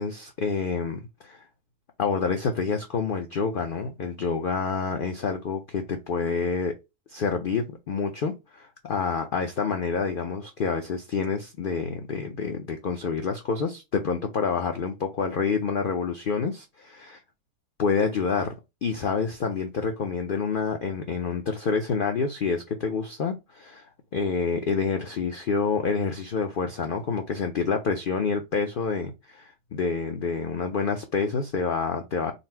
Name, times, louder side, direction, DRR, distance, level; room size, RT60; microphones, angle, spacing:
voice 1, 0.0-1.4 2.0-6.8 7.1-17.2 17.8-23.9 24.1-32.3, left 5 dB, 75° left, 0.4 m, -28 dB
4.0 x 2.0 x 4.4 m
omnidirectional pair, 1.6 m